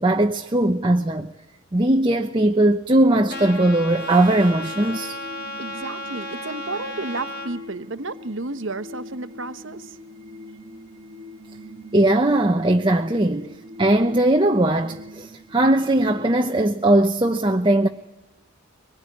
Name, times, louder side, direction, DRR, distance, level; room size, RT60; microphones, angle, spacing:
voice 1, 0.0-1.3 1.7-5.2 11.9-13.5 13.8-17.9, right 1 dB, 25° right, 0.9 m, -19 dB
sound 1, 2.9-16.6, left 1 dB, 40° right, 1.8 m, -42 dB
Trumpet, 3.3-7.5, left 1 dB, 50° left, 4.1 m, -34 dB
voice 2, 5.6-10.0, right 2 dB, 60° right, 1.2 m, -32 dB
24.0 x 20.5 x 9.9 m
head